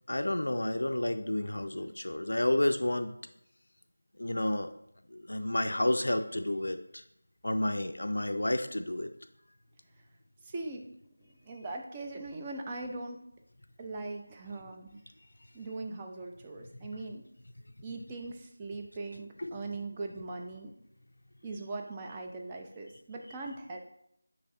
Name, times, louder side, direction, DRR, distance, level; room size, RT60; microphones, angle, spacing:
voice 1, 0.1-3.1 4.2-4.7 5.1-7.0 7.4-9.1 19.4-19.6, left 1 dB, 60° left, 8 dB, 0.4 m, -30 dB
voice 2, 10.5-10.8 11.5-13.2 13.8-15.0 15.5-17.2 17.8-20.7 21.4-23.8, right 2 dB, 15° right, 2 dB, 0.4 m, -40 dB
9.1 x 3.2 x 3.7 m, 0.74 s
figure-of-eight pair, 165°, 0 cm